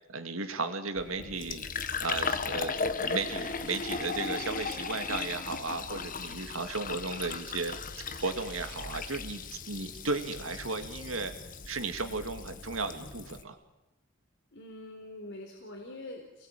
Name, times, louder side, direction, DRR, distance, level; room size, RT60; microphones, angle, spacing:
voice 1, 0.1-1.6 2.0-11.3 11.6-13.6, right 3 dB, 75° right, 7 dB, 2.6 m, -35 dB
Fill (with liquid), 1.0-13.4, left 4 dB, 40° left, 1.6 m, -37 dB
voice 2, 14.5-16.5, left 1 dB, 60° left, 1 dB, 4.3 m, -44 dB
28.5 x 21.0 x 9.4 m, 0.97 s
head